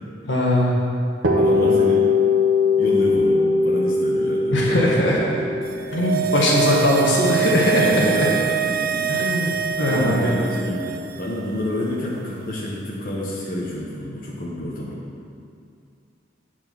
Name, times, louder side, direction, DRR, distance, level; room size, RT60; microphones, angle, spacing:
voice 1, 0.2-0.8 4.5-5.2 5.9-7.8 9.1-10.3, left 1 dB, 80° left, -4 dB, 1.7 m, -20 dB
sound 1, 1.2-9.0, left 3 dB, 90° right, 1.2 m, -21 dB
voice 2, 1.4-2.0 2.8-5.3 7.7-9.1 9.9-15.0, left 1 dB, 45° left, -6 dB, 1.3 m, -28 dB
sound 2, 5.7-11.2 11.5-11.6, right 10 dB, 50° right, 0.4 m, -25 dB
9.1 x 4.8 x 6.2 m, 2.4 s
head